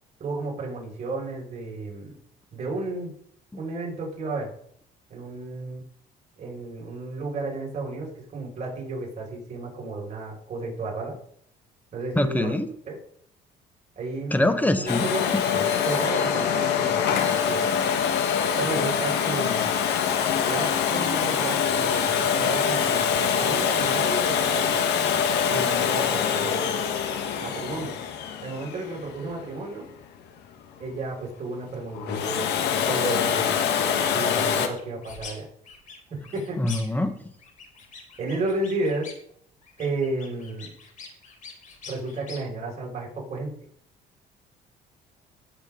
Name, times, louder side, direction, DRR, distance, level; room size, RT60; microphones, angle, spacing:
voice 1, 0.2-2.2 2.5-3.1 3.6-4.5 5.1-5.8 6.4-11.2 11.9-12.5 12.9-13.0 14.0-14.4 14.8-17.7 18.6-19.7 20.4-24.9 25.5-26.7 27.4-27.9 28.4-29.9 30.8-33.5 34.1-35.5 36.1-36.6 38.2-39.1 39.8-40.7 41.8-43.5, right 2 dB, 45° right, -2 dB, 5.8 m, -32 dB
voice 2, 12.1-12.7 14.3-15.1 16.5-16.6 36.6-37.2, left 1 dB, 10° left, 9 dB, 1.2 m, -23 dB
Domestic sounds home sounds, 14.9-29.6 31.9-34.7, left 7 dB, 80° left, 1.5 m, -24 dB
sound 1, 34.8-35.4 35.6-37.1 37.4-39.3 39.6-42.4, left 5 dB, 50° left, 3.5 m, -44 dB
18.0 x 7.5 x 3.8 m, 0.68 s
cardioid pair, 110°, 17 cm